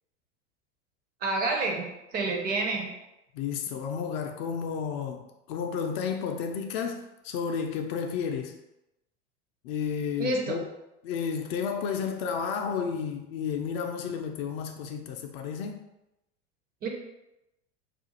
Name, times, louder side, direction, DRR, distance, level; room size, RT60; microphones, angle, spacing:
voice 1, 1.2-2.9 10.2-10.6 16.8-16.9, right 3 dB, 25° right, 0.5 m, -29 dB
voice 2, 3.3-8.5 9.6-10.7 11.0-15.8, left 6 dB, 55° left, 0.5 m, -32 dB
2.4 x 2.3 x 2.8 m
hypercardioid pair, 90°, 36 cm